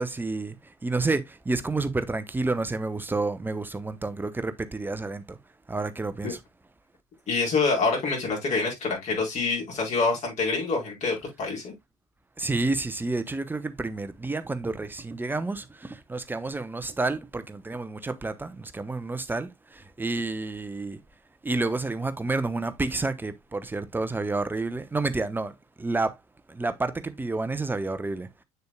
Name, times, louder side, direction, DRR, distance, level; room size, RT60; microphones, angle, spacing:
voice 1, 0.0-5.4 5.7-6.4 12.4-21.0 21.4-26.2 26.5-28.3, right 3 dB, 10° right, 0.9 m, -30 dB
voice 2, 7.3-11.7, left 4 dB, 40° left, 4.5 m, -26 dB
8.1 x 6.6 x 2.3 m
figure-of-eight pair, 60°, 18 cm